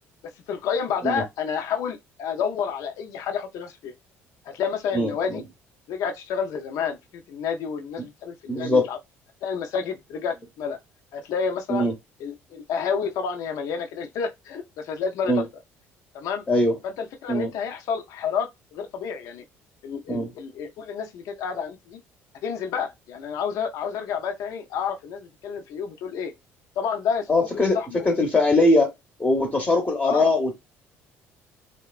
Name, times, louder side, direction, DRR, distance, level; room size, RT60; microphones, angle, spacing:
voice 1, 0.5-3.9 4.5-5.4 5.9-9.0 9.4-10.8 11.1-11.9 12.2-15.4 16.1-16.4 16.8-19.4 19.8-22.0 22.4-26.3 26.8-27.3 27.5-28.1 30.0-30.3, left 6 dB, 70° left, 0.5 m, -29 dB
voice 2, 4.9-5.4 8.5-8.9 11.7-11.9 15.3-15.4 16.5-16.7 17.3-17.5 20.1-20.3 27.3-27.8 28.0-28.9 29.2-30.5, left 2 dB, 20° left, 0.7 m, -21 dB
2.8 x 2.1 x 2.3 m
supercardioid pair, 90°, 6 cm